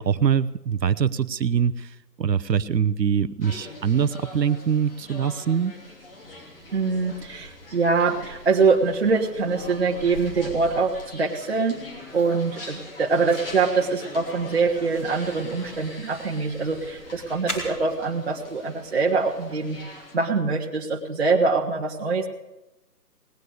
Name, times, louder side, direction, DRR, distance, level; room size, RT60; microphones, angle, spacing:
voice 1, 0.0-5.7, right 7 dB, 85° right, 15 dB, 0.8 m, -23 dB
sound 1, 3.4-20.2, left 2 dB, 35° left, 2.9 m, -43 dB
sound 2, 6.2-17.9, right 1 dB, 5° left, 1.6 m, -43 dB
voice 2, 6.7-11.8 12.1-19.8 20.1-22.3, right 4 dB, 40° right, 0 dB, 1.2 m, -24 dB
18.5 x 9.7 x 7.9 m, 0.99 s
hypercardioid pair, 170°, 49 cm